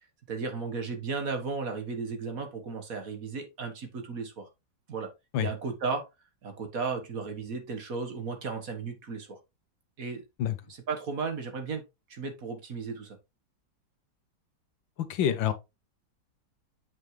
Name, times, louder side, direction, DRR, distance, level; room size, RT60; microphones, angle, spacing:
voice 1, 0.3-4.5 4.9-5.1 5.4-6.1 6.4-9.4 10.0-10.2 10.7-11.8 12.1-13.2, right 4 dB, 50° right, 1.7 m, -35 dB
voice 2, 15.0-15.5, left 10 dB, 90° left, 1.7 m, -27 dB
8.0 x 5.4 x 3.2 m
omnidirectional pair, 2.0 m